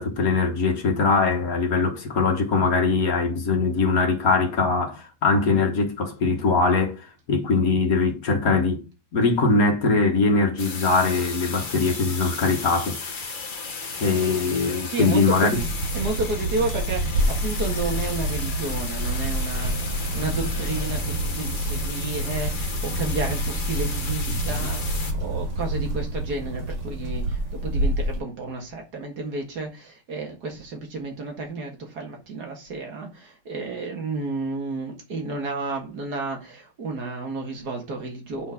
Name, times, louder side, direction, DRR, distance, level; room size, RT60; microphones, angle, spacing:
voice 1, 0.0-8.8 9.1-13.6 14.0-15.6 24.6-24.7, left 4 dB, 55° left, 1.7 m, -22 dB
sound 1, 10.6-25.1, left 4 dB, 35° left, 1.0 m, -34 dB
voice 2, 14.8-15.6 15.9-19.7 20.1-38.5, right 3 dB, 60° right, 2.3 m, -31 dB
sound 2, 15.5-28.2, right 1 dB, 80° right, 2.8 m, -27 dB
8.2 x 4.5 x 5.8 m
omnidirectional pair, 1.9 m